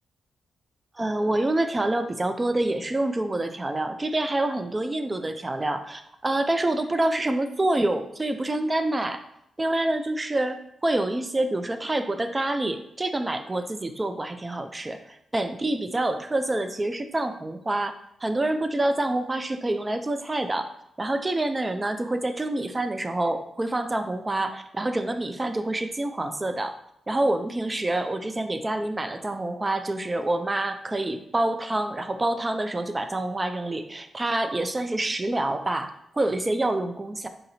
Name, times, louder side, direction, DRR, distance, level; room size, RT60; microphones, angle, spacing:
voice 1, 1.0-9.2 9.6-17.9 18.2-20.7 21.0-26.7 27.1-37.3, right 2 dB, 25° right, 9 dB, 0.4 m, -27 dB
3.8 x 2.6 x 4.2 m, 0.77 s
cardioid pair, 55°, 0 cm